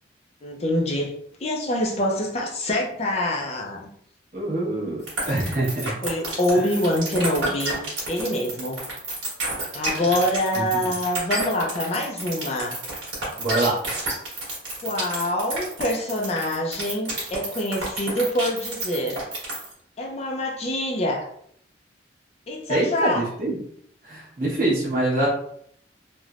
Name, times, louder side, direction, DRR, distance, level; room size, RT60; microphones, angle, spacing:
voice 1, 0.4-3.9 6.0-8.8 9.7-12.8 14.8-19.2 20.0-21.3 22.5-23.2, left 1 dB, 35° left, 0 dB, 0.4 m, -25 dB
voice 2, 4.3-5.0 5.3-6.0 6.5-6.7 9.9-10.1 10.5-10.7 13.4-13.8 22.7-23.6 24.0-25.3, right 2 dB, 45° right, -6 dB, 1.1 m, -25 dB
sound 1, 5.1-19.7, right 2 dB, 75° right, 1.2 m, -30 dB
3.2 x 2.1 x 2.4 m, 0.68 s
head